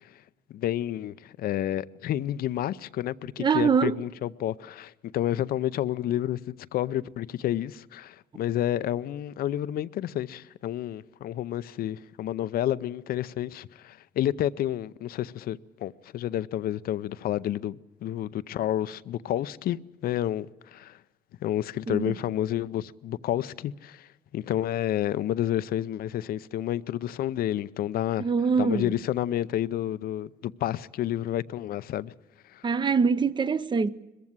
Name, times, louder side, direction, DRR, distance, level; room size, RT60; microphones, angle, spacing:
voice 1, 0.5-21.0 21.4-24.1 24.3-28.3 28.6-32.1 32.5-32.7, left 12 dB, 60° left, 0.6 m, -30 dB
voice 2, 3.4-3.9 21.9-22.1 28.2-28.9 32.6-33.9, right 5 dB, 25° right, 0.7 m, -24 dB
21.5 x 15.0 x 9.6 m
cardioid pair, 110°, 17 cm